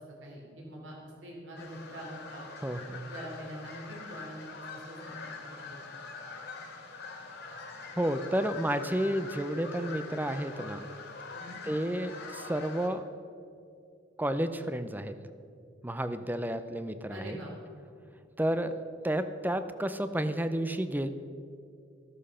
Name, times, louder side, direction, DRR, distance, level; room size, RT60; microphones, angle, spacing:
voice 1, 0.2-2.5 3.1-5.8 11.3-11.6 17.1-17.5, equal, 80° right, -1 dB, 3.9 m, -44 dB
sound 1, 1.6-12.9, left 4 dB, 65° left, 2.7 m, -44 dB
voice 2, 2.6-3.1 8.0-10.9 11.6-13.0 14.2-15.2 15.8-17.4 18.4-18.8 19.0-21.1, right 1 dB, 10° right, 10 dB, 0.6 m, -31 dB
14.0 x 14.0 x 5.6 m, 2.4 s
head